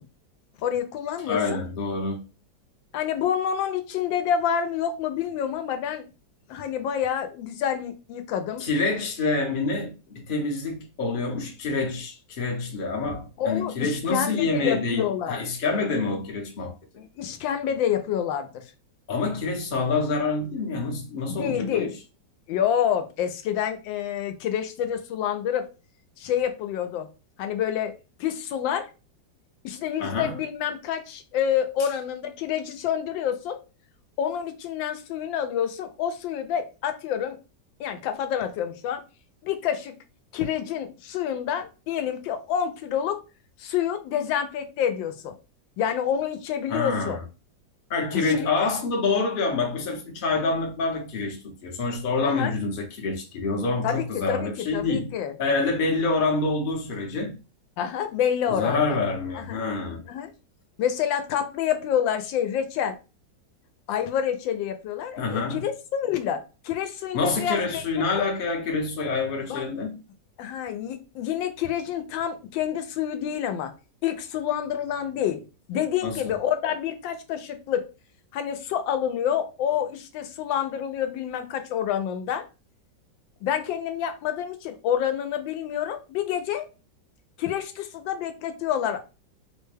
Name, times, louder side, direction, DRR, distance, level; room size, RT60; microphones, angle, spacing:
voice 1, 0.6-1.6 2.9-6.1 6.5-8.7 13.4-15.4 17.0-18.6 21.3-22.0 22.5-25.7 26.2-27.1 27.4-27.9 28.2-28.9 29.6-33.6 34.2-37.4 37.8-39.0 39.4-39.9 40.3-43.2 43.6-45.3 45.8-47.2 48.1-48.4 52.2-52.5 53.8-55.3 57.8-59.0 59.3-59.6 60.1-60.3 60.8-63.0 63.9-67.8 69.5-69.6 70.4-73.7 74.0-75.4 75.7-77.9 78.3-82.4 83.4-86.7 87.4-89.0, left 9 dB, 85° left, 1.3 m, -28 dB
voice 2, 1.3-2.2 8.6-16.7 19.1-21.9 30.0-30.4 46.7-47.2 47.9-55.1 55.4-57.4 58.5-60.0 65.2-65.6 67.1-70.0 76.0-76.2, left 3 dB, 45° left, 0.7 m, -27 dB
3.3 x 2.1 x 3.2 m
omnidirectional pair, 2.0 m